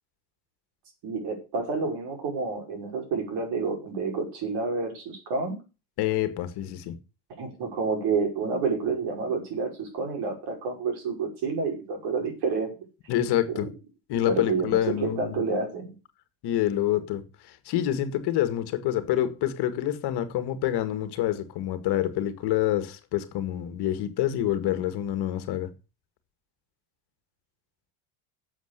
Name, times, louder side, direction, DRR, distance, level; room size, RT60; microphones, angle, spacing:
voice 1, 1.0-5.6 7.4-12.7 13.5-13.6 14.3-15.9, right 4 dB, 50° right, 5.5 m, -29 dB
voice 2, 6.0-7.0 13.1-13.7 14.1-15.4 16.4-25.7, left 12 dB, 50° left, 1.9 m, -27 dB
12.0 x 7.6 x 6.8 m
cardioid pair, 155°, 50 cm